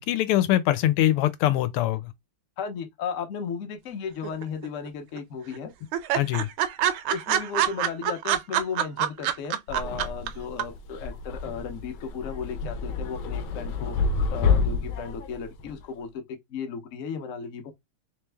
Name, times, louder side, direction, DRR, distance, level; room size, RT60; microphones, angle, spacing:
voice 1, 0.0-2.1 6.1-6.5, left 13 dB, 90° left, 1.5 m, -23 dB
voice 2, 2.6-5.7 7.1-14.0 14.3-16.1 16.5-17.7, left 6 dB, 55° left, 0.8 m, -35 dB
sound 1, 4.2-4.9 5.2-5.3 5.5-5.6 5.9-10.3 10.6-10.7, right 11 dB, 80° right, 1.4 m, -25 dB
sound 2, 9.7-15.8, left 5 dB, 75° left, 1.3 m, -29 dB
3.5 x 3.2 x 3.3 m
omnidirectional pair, 2.4 m